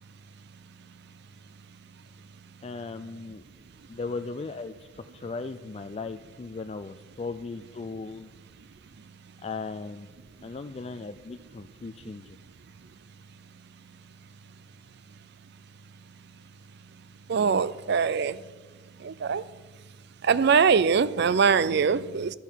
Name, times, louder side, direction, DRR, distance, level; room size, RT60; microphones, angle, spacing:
voice 1, 2.6-3.4 3.9-8.3 9.4-10.1 10.4-12.4, left 4 dB, 30° left, 0.4 m, -37 dB
voice 2, 17.3-18.4 19.0-19.4 20.2-22.3, right 6 dB, 60° right, 0.4 m, -22 dB
15.5 x 11.5 x 4.5 m
head